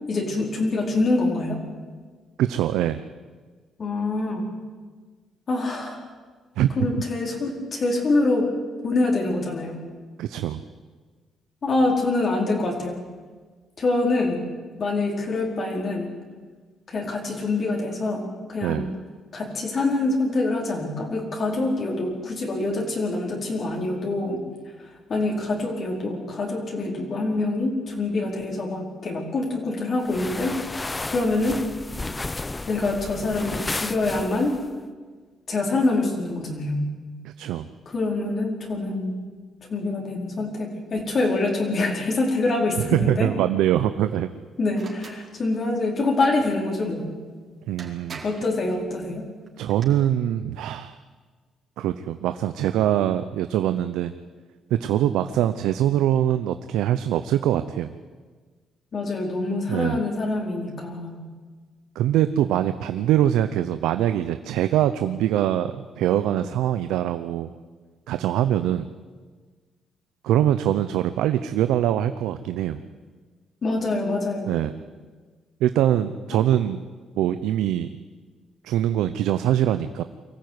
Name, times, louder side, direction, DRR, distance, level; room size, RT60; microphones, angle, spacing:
voice 1, 0.1-1.6 3.8-4.5 5.5-6.0 6.8-8.5 8.8-9.9 11.6-13.1 13.8-14.4 14.8-16.1 16.9-19.0 19.3-24.4 24.8-31.6 32.7-34.5 35.5-36.8 37.9-39.2 39.7-43.3 44.6-47.1 48.2-49.3 58.9-61.2 73.6-74.5 76.3-76.4, left 2 dB, 50° left, 0 dB, 4.7 m, -25 dB
voice 2, 2.4-3.0 6.6-6.7 10.2-10.6 18.6-18.9 37.2-37.7 42.9-44.3 47.7-48.2 49.6-51.0 51.8-54.1 54.7-57.9 59.7-60.0 61.9-67.5 68.1-68.9 70.2-72.8 74.5-74.7 75.6-76.8 77.2-77.9 78.6-80.0, right 11 dB, 90° right, 11 dB, 0.7 m, -23 dB
sound 1, 30.0-34.7, left 2 dB, 20° left, 0.7 m, -33 dB
sound 2, 44.7-45.2 47.3-47.4 47.8-48.5 49.5-49.9, right 4 dB, 45° right, 4.5 m, -41 dB
23.5 x 14.5 x 9.6 m, 1.4 s
cardioid pair, 90°, 0 cm